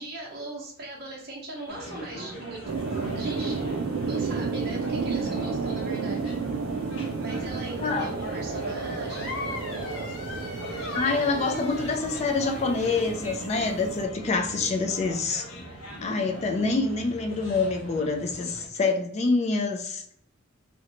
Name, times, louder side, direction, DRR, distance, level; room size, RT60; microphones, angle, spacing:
voice 1, 0.0-2.6 2.9-6.3 7.2-10.6, right 2 dB, 50° right, -3 dB, 0.7 m, -40 dB
sound 1, 1.7-18.7, equal, 90° left, 0.8 m, -42 dB
sound 2, 2.7-14.0, right 4 dB, 80° right, 0.4 m, -32 dB
voice 2, 7.8-8.1 10.9-15.4 16.0-20.0, left 3 dB, 30° left, 4 dB, 0.3 m, -26 dB
sound 3, 9.1-13.4, left 3 dB, 60° left, 0.8 m, -40 dB
2.5 x 2.1 x 2.8 m, 0.68 s
head